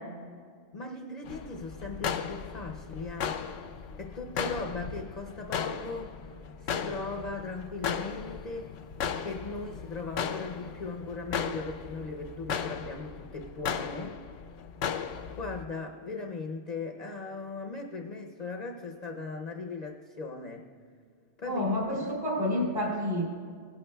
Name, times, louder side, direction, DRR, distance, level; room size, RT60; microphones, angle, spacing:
voice 1, 0.7-3.4 4.0-6.2 6.6-8.7 9.2-14.2 15.4-20.7 21.4-22.1, left 3 dB, 45° left, 2 dB, 0.6 m, -38 dB
sound 1, 1.3-15.6, left 7 dB, 85° left, 1.0 m, -36 dB
voice 2, 21.5-23.2, left 1 dB, 55° right, -3 dB, 2.9 m, -29 dB
17.0 x 11.5 x 2.3 m, 2.1 s
omnidirectional pair, 1.2 m